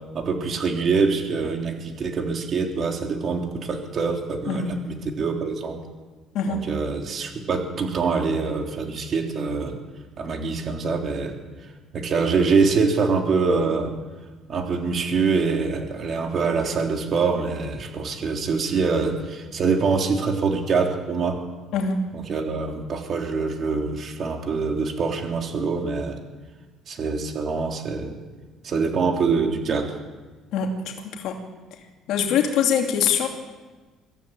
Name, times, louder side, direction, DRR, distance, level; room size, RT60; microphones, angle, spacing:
voice 1, 0.1-5.8 6.5-9.8 10.2-11.3 11.9-13.9 14.5-21.4 22.1-26.2 26.9-28.2 28.6-29.9, right 4 dB, 40° right, 2 dB, 3.5 m, -24 dB
voice 2, 6.3-6.7 21.7-22.0 30.5-31.4 32.1-33.3, left 6 dB, 65° left, 2 dB, 2.7 m, -23 dB
24.0 x 15.5 x 8.9 m, 1.3 s
cardioid pair, 145°, 0 cm